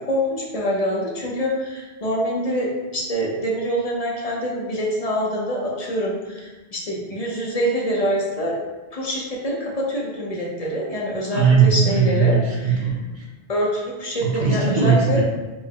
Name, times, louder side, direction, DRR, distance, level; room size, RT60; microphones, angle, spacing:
voice 1, 0.0-8.6 8.9-12.4 13.5-15.2, equal, 40° left, -3 dB, 0.7 m, -25 dB
voice 2, 11.3-13.3 14.2-15.2, right 5 dB, 50° right, -3 dB, 0.8 m, -19 dB
4.4 x 2.0 x 3.6 m, 1.2 s
omnidirectional pair, 1.1 m